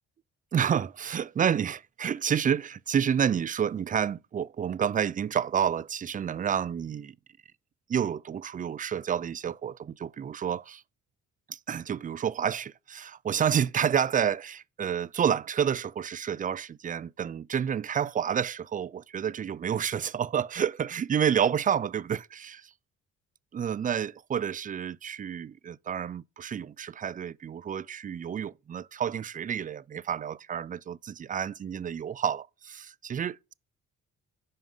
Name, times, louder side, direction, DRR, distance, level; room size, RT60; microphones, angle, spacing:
voice 1, 0.5-7.1 7.9-10.8 11.5-22.6 23.5-33.5, right 8 dB, 30° right, 0.4 m, -29 dB
9.5 x 5.5 x 3.6 m
cardioid pair, 90°, 30 cm